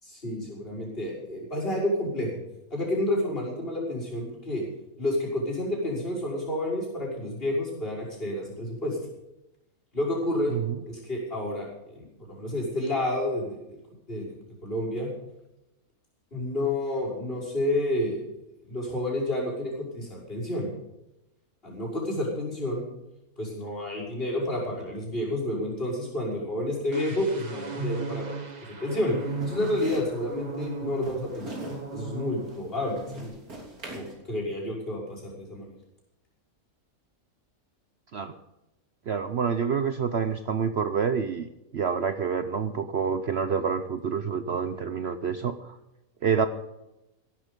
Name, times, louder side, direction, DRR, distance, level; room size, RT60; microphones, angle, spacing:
voice 1, 0.0-2.3 2.7-4.6 5.0-9.0 9.9-10.6 10.9-11.7 11.9-13.8 14.1-14.3 14.6-15.1 16.3-18.3 18.6-20.7 21.6-22.9 23.4-28.2 28.7-29.2 29.4-31.6 31.9-33.3 33.9-35.7, left 1 dB, 40° left, -3 dB, 6.1 m, -30 dB
sound 1, 26.9-32.6 32.9-33.2, right 3 dB, 30° right, 1.3 m, -37 dB
sound 2, 29.1-34.2, right 1 dB, 85° right, 3.8 m, -43 dB
voice 2, 39.1-41.5 41.7-45.7 46.2-46.5, right 6 dB, 55° right, 9 dB, 0.9 m, -27 dB
16.5 x 12.5 x 5.3 m, 0.91 s
omnidirectional pair, 1.5 m